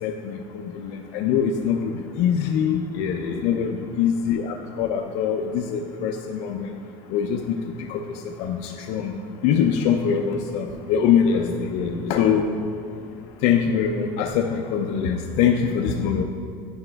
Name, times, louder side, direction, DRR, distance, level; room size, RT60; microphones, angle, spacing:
voice 1, 0.0-2.8 3.3-6.7 7.1-7.6 7.9-9.1 9.4-11.7 12.1-12.6 13.4-16.2, left 7 dB, 65° left, 3 dB, 0.4 m, -23 dB
voice 2, 2.9-3.3 11.2-12.2 16.0-16.2, left 6 dB, 85° left, 4 dB, 0.8 m, -29 dB
9.8 x 4.9 x 2.2 m, 2.4 s
cardioid pair, 135°, 13 cm